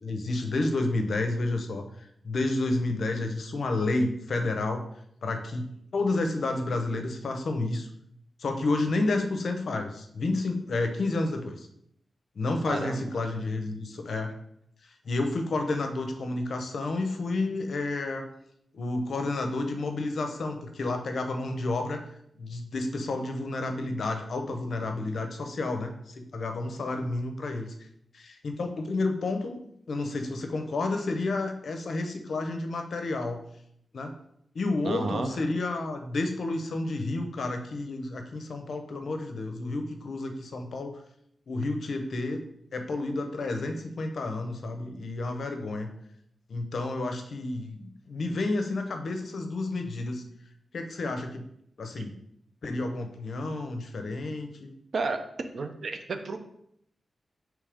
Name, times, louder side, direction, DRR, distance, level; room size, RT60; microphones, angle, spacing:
voice 1, 0.0-4.9 5.2-7.9 8.4-11.7 12.4-14.3 15.0-18.3 18.7-22.0 22.4-27.7 28.1-29.6 29.9-33.4 33.9-34.1 34.5-41.0 41.5-42.4 42.7-45.9 46.5-50.2 50.7-51.5 51.8-52.1 52.6-54.7, left 2 dB, 60° left, 5 dB, 0.5 m, -30 dB
voice 2, 12.7-13.1 34.8-35.4 54.9-55.3 55.5-56.4, right 3 dB, 55° right, 7 dB, 0.4 m, -32 dB
4.9 x 3.1 x 3.4 m, 0.74 s
wide cardioid pair, 155°, 0 cm